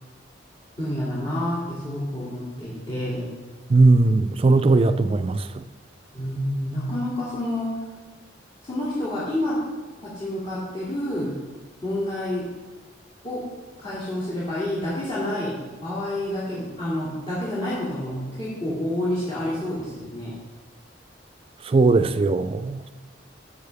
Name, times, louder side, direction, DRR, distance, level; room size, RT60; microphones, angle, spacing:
voice 1, 0.8-3.3 6.1-7.9 8.6-9.6 10.0-11.4 11.8-12.5 13.2-13.5 13.8-20.3, left 1 dB, 30° left, -10 dB, 2.6 m, -28 dB
voice 2, 3.7-5.7 21.6-22.9, right 3 dB, 30° right, 11 dB, 0.4 m, -19 dB
13.0 x 7.2 x 3.5 m, 1.3 s
head